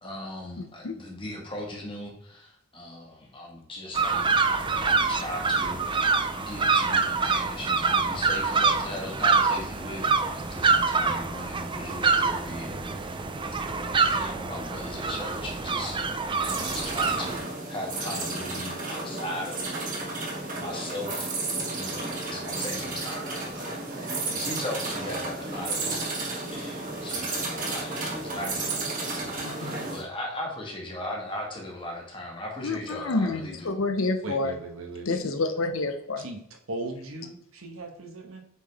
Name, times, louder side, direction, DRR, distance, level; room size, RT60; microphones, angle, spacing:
voice 1, 0.0-13.3 13.6-20.1 20.6-21.4 21.7-33.8, left 1 dB, 25° left, -1 dB, 1.6 m, -38 dB
voice 2, 0.6-0.9 29.4-29.8 32.6-34.5 35.1-36.2, left 3 dB, 70° left, 7 dB, 0.8 m, -28 dB
sound 1, 3.9-17.4, right 4 dB, 25° right, 0.4 m, -26 dB
sound 2, 16.4-30.0, right 2 dB, 40° right, 1.8 m, -32 dB
voice 3, 34.2-35.2 36.2-36.4 36.7-38.4, right 2 dB, 80° right, 4 dB, 1.2 m, -37 dB
8.1 x 3.8 x 3.4 m, 0.72 s
head